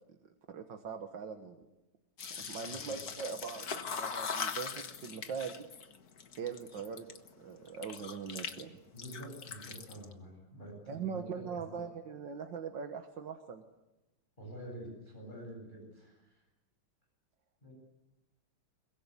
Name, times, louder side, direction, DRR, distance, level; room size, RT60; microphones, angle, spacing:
voice 1, 0.2-1.6 2.4-5.7 6.4-7.1 7.4-8.8 10.9-13.6, right 6 dB, 60° right, 5 dB, 1.9 m, -41 dB
sound 1, 2.2-7.3 7.7-8.6 8.9-10.1, left 6 dB, 50° left, 1.7 m, -41 dB
voice 2, 2.6-3.0 8.9-11.2 11.7-11.8 14.4-16.4 17.6-17.7, right 1 dB, 20° left, 0 dB, 8.2 m, -47 dB
23.0 x 21.5 x 8.3 m, 1.0 s
omnidirectional pair, 2.3 m